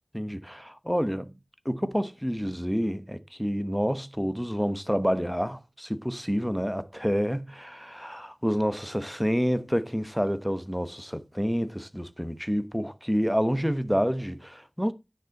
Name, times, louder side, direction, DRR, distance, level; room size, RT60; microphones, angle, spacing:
voice 1, 0.1-1.3 1.6-14.9, equal, ahead, 1.1 m, -28 dB
9.8 x 6.5 x 4.1 m
wide cardioid pair, 45°, 0 cm